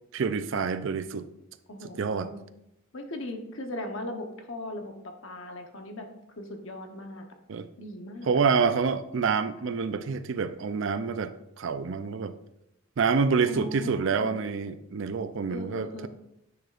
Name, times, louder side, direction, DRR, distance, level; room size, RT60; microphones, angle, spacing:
voice 1, 0.1-1.3 2.0-2.3 7.5-7.7 8.3-12.3 13.0-16.1, right 5 dB, 60° right, 0.4 m, -27 dB
voice 2, 1.7-2.4 2.9-6.1 6.4-7.3 7.8-8.4 13.5-14.4 15.5-16.1, left 1 dB, 60° left, 0.9 m, -38 dB
9.2 x 6.2 x 2.5 m
head